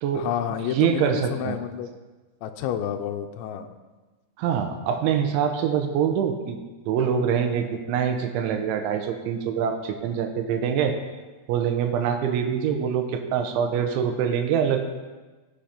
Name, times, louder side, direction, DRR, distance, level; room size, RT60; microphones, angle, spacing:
voice 1, 0.1-1.9 2.4-3.7, left 10 dB, 85° left, 6 dB, 2.9 m, -29 dB
voice 2, 0.7-1.6 4.4-6.6 6.9-11.0 11.5-14.8, right 8 dB, 90° right, 5 dB, 3.3 m, -24 dB
17.0 x 5.8 x 5.1 m, 1.2 s
omnidirectional pair, 5.2 m